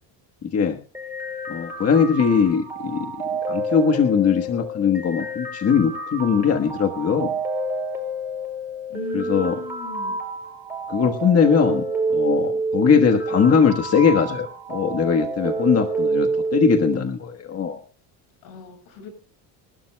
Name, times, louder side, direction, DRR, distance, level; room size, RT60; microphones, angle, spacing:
voice 1, 0.4-0.8 1.5-3.1 3.5-7.3 9.1-9.5 10.9-11.8 12.1-17.8, left 6 dB, 35° left, 4 dB, 1.4 m, -20 dB
sound 1, 0.9-16.9, right 2 dB, 5° right, 5.4 m, -28 dB
voice 2, 8.9-10.2 18.4-19.1, left 7 dB, 85° left, 4 dB, 7.5 m, -38 dB
26.0 x 12.0 x 2.3 m, 0.33 s
cardioid pair, 120°, 43 cm